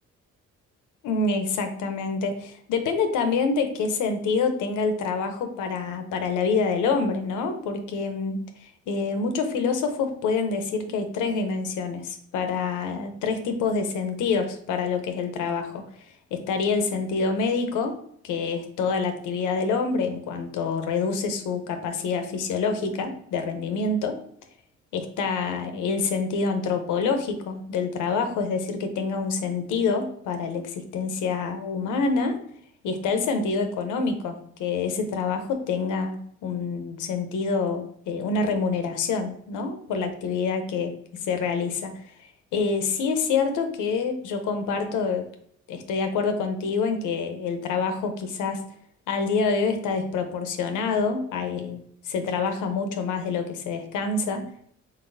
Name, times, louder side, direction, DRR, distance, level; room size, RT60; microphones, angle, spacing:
voice 1, 1.0-15.8 16.3-17.9 18.2-24.2 24.9-32.4 32.8-40.9 41.2-41.9 42.5-45.2 45.7-48.6 49.1-54.4, left 4 dB, 85° left, 6 dB, 0.8 m, -26 dB
4.0 x 3.9 x 2.6 m, 0.65 s
cardioid pair, 90°, 30 cm